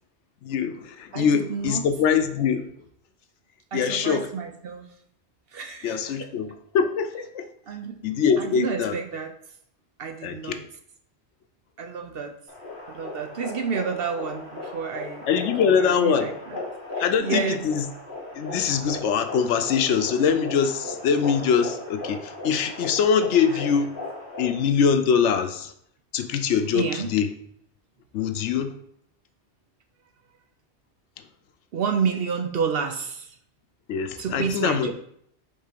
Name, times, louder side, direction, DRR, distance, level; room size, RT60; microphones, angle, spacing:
voice 1, 0.4-2.7 3.7-4.3 5.8-6.5 6.7-7.5 8.0-8.9 10.2-10.6 15.3-16.3 17.0-17.8 18.3-23.9 24.4-25.7 26.1-27.3 28.1-28.7 33.9-34.9, left 7 dB, 90° left, 8 dB, 0.9 m, -23 dB
voice 2, 1.1-1.9 3.7-4.9 5.5-6.3 7.7-8.0 8.4-9.3 10.0-10.6 11.8-12.3 12.9-16.6 16.9-17.6 26.7-27.1 31.7-33.4 34.2-34.9, right 6 dB, 60° right, 5 dB, 0.8 m, -30 dB
sound 1, 12.5-24.6, left 2 dB, 50° left, 1.6 m, -37 dB
5.4 x 3.6 x 5.1 m, 0.68 s
omnidirectional pair, 1.2 m